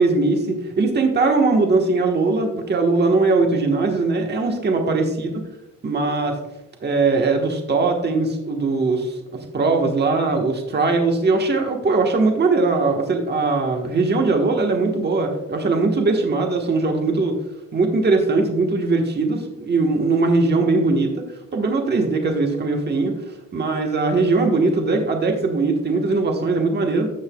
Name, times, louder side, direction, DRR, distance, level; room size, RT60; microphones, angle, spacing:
voice 1, 0.0-5.3 5.8-6.4 6.8-17.4 17.7-21.2 21.5-23.1 23.5-27.1, right 3 dB, 35° right, 3 dB, 1.3 m, -20 dB
15.5 x 5.6 x 2.3 m, 0.95 s
cardioid pair, 90°, 30 cm